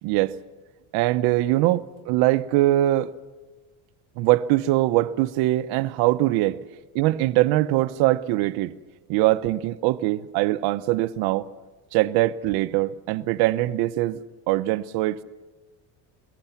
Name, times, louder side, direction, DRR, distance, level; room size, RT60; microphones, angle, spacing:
voice 1, 0.0-0.4 0.9-3.1 4.2-6.6 6.9-8.7 9.1-11.5 11.9-15.2, right 16 dB, 70° right, 0.8 m, -22 dB
23.0 x 21.0 x 7.2 m
cardioid pair, 150°, 40 cm